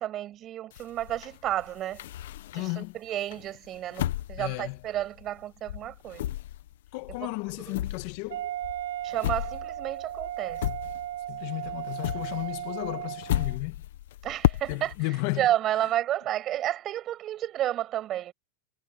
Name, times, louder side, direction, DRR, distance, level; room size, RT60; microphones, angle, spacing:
voice 1, 0.0-2.0 2.5-6.2 7.2-7.3 7.7-7.8 9.0-10.6 14.2-14.9 15.4-18.3, right 12 dB, 35° right, 6.7 m, -31 dB
sound 1, 0.7-2.9 3.3-5.4 5.7-11.4 11.6-15.0, left 13 dB, 75° left, 1.3 m, -33 dB
voice 2, 2.5-2.9 4.4-4.8 6.9-8.5 11.3-13.8 14.7-15.5, left 23 dB, 55° left, 1.7 m, -33 dB
Wind instrument woodwind instrument, 8.3-13.6, right 12 dB, 85° right, 6.7 m, -36 dB
supercardioid pair, 140°, 0 cm